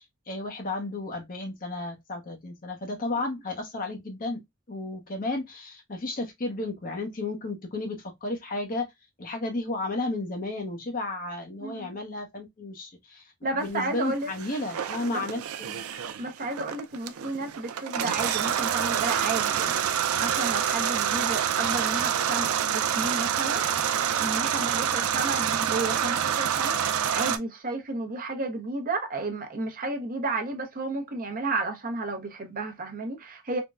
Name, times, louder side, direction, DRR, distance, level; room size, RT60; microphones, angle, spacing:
voice 1, 0.0-4.4 4.7-8.9 9.2-15.8, left 2 dB, 40° left, 0.8 m, -33 dB
voice 2, 11.6-11.9 13.4-14.3 15.1-15.2 16.2-33.6, right 2 dB, 40° right, 0.7 m, -32 dB
sound 1, 14.3-27.4, right 9 dB, 75° right, 0.4 m, -27 dB
3.5 x 2.1 x 2.3 m
head